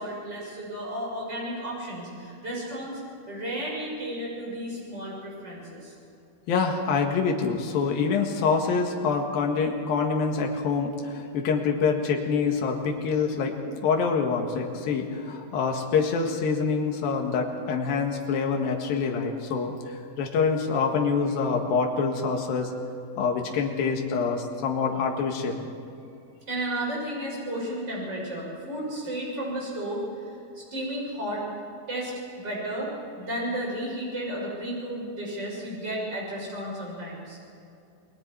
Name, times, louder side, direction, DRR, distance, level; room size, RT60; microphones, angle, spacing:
voice 1, 0.0-3.0 3.3-5.9 26.5-30.0 30.6-31.4 31.9-32.1 32.4-37.4, right 1 dB, 25° right, -4 dB, 6.9 m, -33 dB
voice 2, 6.5-22.7 23.2-25.7, left 5 dB, 70° left, 2 dB, 3.5 m, -26 dB
29.0 x 20.5 x 4.7 m, 2.6 s
omnidirectional pair, 4.4 m